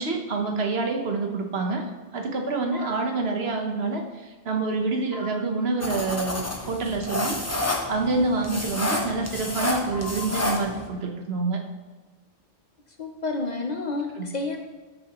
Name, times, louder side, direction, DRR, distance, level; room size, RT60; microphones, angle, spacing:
voice 1, 0.0-1.8 2.1-7.4 7.9-11.6 14.1-14.3, right 3 dB, 65° right, 3 dB, 1.3 m, -27 dB
sound 1, 2.7-2.9 5.1-5.3 7.5-7.7 9.9-10.4, left 2 dB, 35° right, 3.1 m, -38 dB
sound 2, 5.8-10.9, left 2 dB, 15° left, 0.9 m, -29 dB
voice 2, 13.0-14.6, left 3 dB, 50° left, 5 dB, 0.6 m, -30 dB
12.5 x 6.5 x 3.0 m, 1.3 s
omnidirectional pair, 1.1 m